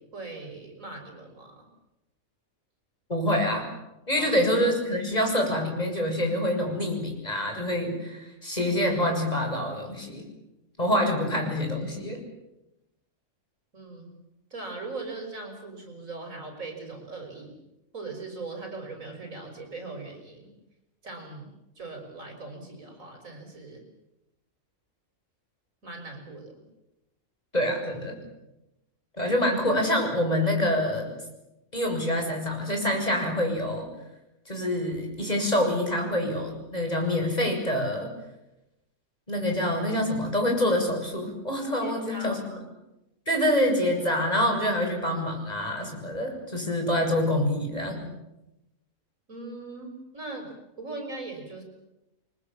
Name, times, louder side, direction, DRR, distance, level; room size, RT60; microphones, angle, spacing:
voice 1, 0.0-1.6 4.2-4.3 13.7-14.1 14.5-17.5 17.9-20.5 21.0-21.5 21.8-23.8 25.8-26.6 41.8-42.7 49.3-50.5 50.8-51.6, right 3 dB, 65° right, 3 dB, 6.1 m, -40 dB
voice 2, 3.1-3.7 4.1-10.2 10.8-12.2 27.5-28.2 29.2-31.1 31.7-33.9 34.5-38.1 39.3-42.4 43.3-48.0, left 1 dB, 25° left, 2 dB, 7.4 m, -26 dB
30.0 x 23.5 x 7.4 m, 0.94 s
omnidirectional pair, 1.5 m